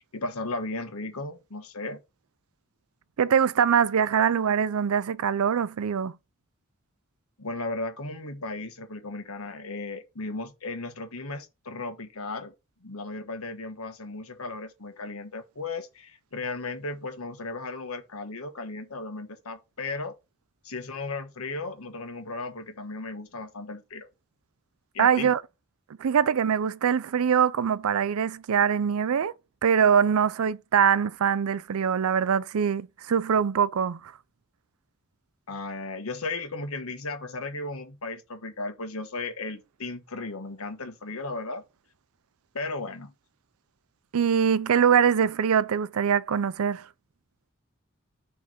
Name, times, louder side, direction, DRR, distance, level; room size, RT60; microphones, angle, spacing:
voice 1, 0.0-2.0 7.4-12.5 12.8-20.1 20.6-24.1 24.9-25.3 35.5-41.6 42.5-43.1, left 3 dB, 90° left, 1.3 m, -35 dB
voice 2, 3.2-6.1 25.0-25.4 26.0-29.3 29.6-34.1 44.1-46.9, right 7 dB, 85° right, 0.4 m, -23 dB
6.4 x 3.4 x 5.6 m
head